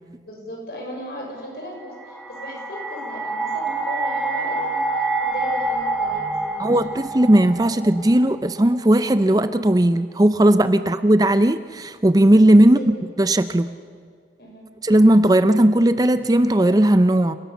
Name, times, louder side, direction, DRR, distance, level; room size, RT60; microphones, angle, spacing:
voice 1, 0.3-6.9 10.8-10.9 12.6-12.9 13.6-13.7 14.4-14.7, equal, 60° left, 0 dB, 6.2 m, -37 dB
sound 1, 1.8-8.9, right 2 dB, ahead, 1.9 m, -27 dB
voice 2, 6.6-12.8 13.2-13.7 14.8-17.4, right 1 dB, 20° right, 12 dB, 0.5 m, -16 dB
29.0 x 17.5 x 7.1 m, 2.1 s
head